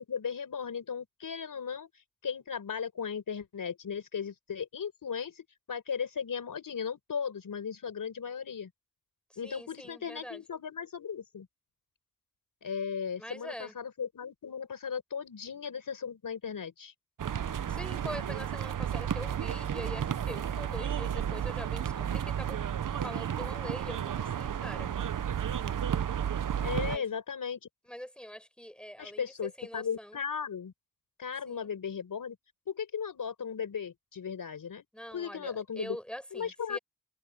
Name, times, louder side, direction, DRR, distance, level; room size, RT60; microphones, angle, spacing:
voice 1, 0.0-1.9 2.2-8.7 9.4-11.5 12.6-16.9 26.6-27.6 29.0-30.7 31.2-32.4 32.7-34.8 35.1-36.0 36.3-36.8, left 7 dB, 80° left, 5.0 m, -36 dB
voice 2, 9.3-10.4 13.2-13.7 17.7-22.6 23.0-24.9 26.8-27.0 27.9-30.2 31.5-31.7 34.9-36.8, equal, 5° left, 7.9 m, -44 dB
sound 1, 17.2-27.0, right 9 dB, 75° right, 0.8 m, -32 dB
wide cardioid pair, 80°, 33 cm